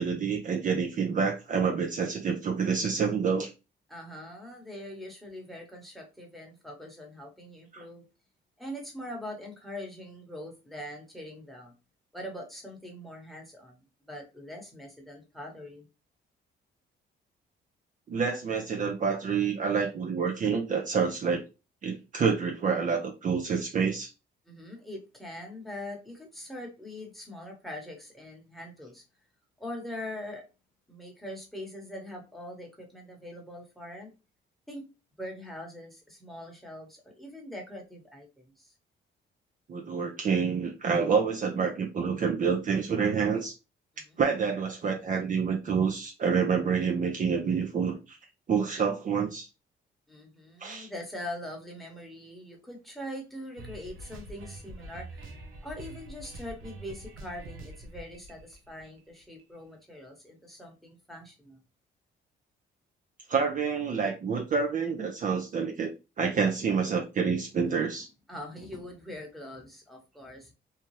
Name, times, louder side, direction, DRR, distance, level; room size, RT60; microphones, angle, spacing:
voice 1, 0.0-3.5 7.7-7.8 18.1-21.4 21.8-24.1 39.7-43.5 44.2-48.2 48.5-49.5 50.6-50.9 63.3-65.9 66.2-68.1, right 6 dB, 40° right, 3 dB, 0.5 m, -28 dB
voice 2, 3.9-8.0 8.6-11.7 12.1-15.9 24.4-29.0 29.6-30.4 30.9-34.1 34.7-34.8 35.2-38.7 43.9-44.2 50.1-55.3 55.6-61.6 68.3-70.5, left 1 dB, ahead, 1 dB, 1.1 m, -42 dB
sound 1, 53.6-59.4, right 1 dB, 85° right, 0.8 m, -45 dB
2.8 x 2.3 x 3.1 m, 0.28 s
cardioid pair, 90°, 20 cm